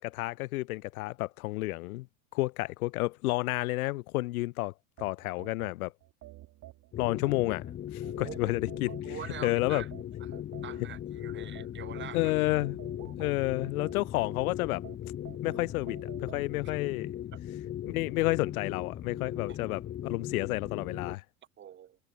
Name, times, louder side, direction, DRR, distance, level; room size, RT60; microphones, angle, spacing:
voice 1, 0.0-2.1 2.3-5.9 7.0-7.6 7.9-9.2 9.4-9.8 12.1-12.8 13.2-14.8 15.4-17.2 17.8-21.2, left 20 dB, 65° left, 0.5 m, -31 dB
sound 1, 5.0-7.8 8.3-11.0 11.6-14.3 14.8-16.5, right 16 dB, 45° right, 1.8 m, -50 dB
sound 2, 6.9-21.1, left 11 dB, 25° left, 0.7 m, -38 dB
voice 2, 8.0-8.6 8.9-9.9 10.2-12.3 21.6-22.0, right 10 dB, 25° right, 1.0 m, -44 dB
figure-of-eight pair, 75°, 46 cm